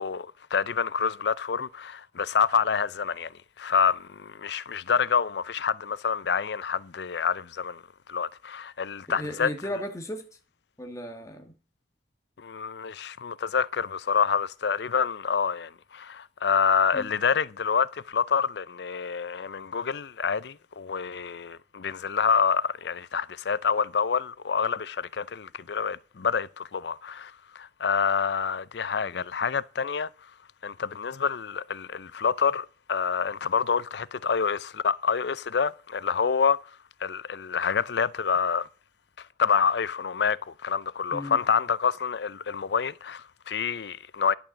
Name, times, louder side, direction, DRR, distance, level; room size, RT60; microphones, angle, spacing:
voice 1, 0.0-3.3 3.6-7.8 8.1-9.5 12.4-30.1 30.6-36.6 37.0-38.7 39.4-44.3, left 6 dB, 75° left, 0.5 m, -27 dB
voice 2, 9.1-10.2 10.8-11.5 16.9-17.1 41.1-41.4, equal, 20° left, 1.4 m, -35 dB
11.0 x 5.9 x 7.0 m
head